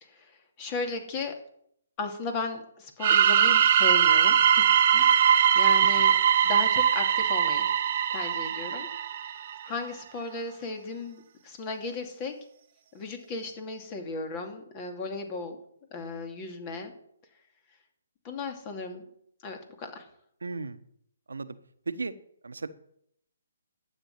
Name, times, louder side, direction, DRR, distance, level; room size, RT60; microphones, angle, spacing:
voice 1, 0.0-1.3 2.0-6.2 6.4-7.7 8.1-8.9 9.6-12.3 12.9-15.6 15.9-16.9 18.2-19.0 19.4-20.1, left 3 dB, 30° left, 5 dB, 2.6 m, -36 dB
sound 1, 3.0-9.7, right 9 dB, 45° right, 1.0 m, -22 dB
voice 2, 20.4-20.8 21.3-21.5 21.9-22.1 22.4-22.7, right 4 dB, 85° right, 11 dB, 1.2 m, -34 dB
12.0 x 8.1 x 8.6 m, 0.71 s
hypercardioid pair, 150°, 0 cm